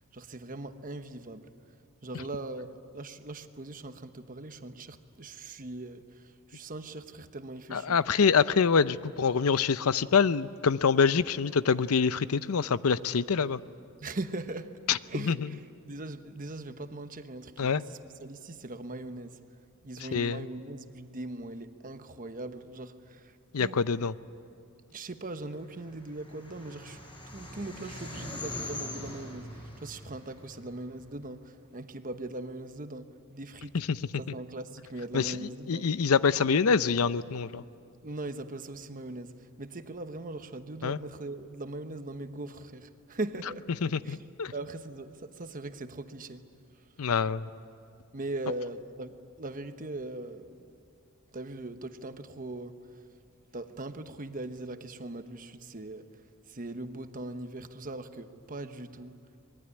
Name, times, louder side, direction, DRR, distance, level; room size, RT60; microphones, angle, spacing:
voice 1, 0.1-1.5 2.0-8.0 14.0-19.4 19.8-23.8 24.9-27.0 27.3-33.8 34.2-35.9 38.0-43.7 44.0-44.2 44.5-46.4 46.8-46.9 48.1-50.7 51.3-53.0 53.5-56.2 56.5-59.2, right 2 dB, 40° right, 9 dB, 1.1 m, -40 dB
voice 2, 7.7-13.6 14.9-15.0 15.3-15.4 17.6-17.8 20.1-20.5 23.5-24.1 33.7-34.0 35.1-35.4 35.7-37.6 40.8-41.0 43.8-44.5 47.0-47.5, left 5 dB, 85° left, 15 dB, 0.6 m, -25 dB
sound 1, 25.7-31.1, left 1 dB, 20° left, 6.5 m, -42 dB
25.0 x 21.5 x 9.9 m, 2.5 s
head